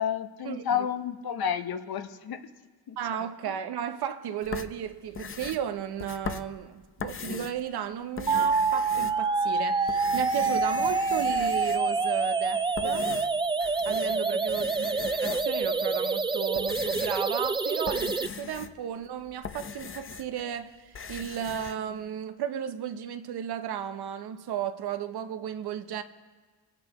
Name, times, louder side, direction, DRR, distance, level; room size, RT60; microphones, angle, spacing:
voice 1, 0.0-2.4 2.9-3.0 12.8-13.0 14.0-14.1 14.5-14.6, left 8 dB, 70° left, 0.9 m, -31 dB
voice 2, 3.0-13.1 13.8-26.0, right 9 dB, 80° right, 0.8 m, -34 dB
sound 1, 4.4-7.7 8.0-9.5 9.8-12.0 12.6-14.2 14.5-15.7 16.2-20.5 20.7-21.8, left 6 dB, 35° left, 0.6 m, -40 dB
sound 2, 8.3-18.3, right 4 dB, 15° right, 0.3 m, -27 dB
24.5 x 9.2 x 3.0 m
cardioid pair, 75°, 38 cm